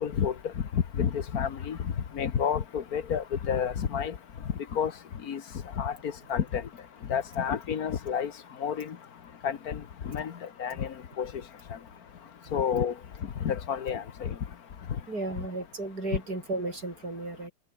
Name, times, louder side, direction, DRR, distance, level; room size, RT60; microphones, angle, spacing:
voice 1, 0.0-4.2 4.7-4.9 5.2-5.4 5.8-6.6 7.1-8.3 8.6-9.0 9.4-11.3 11.7-11.8 12.5-12.9 13.4-14.3, left 7 dB, 50° left, 1.6 m, -30 dB
voice 2, 15.1-17.5, right 2 dB, 45° right, 7.2 m, -34 dB
omnidirectional pair, 2.3 m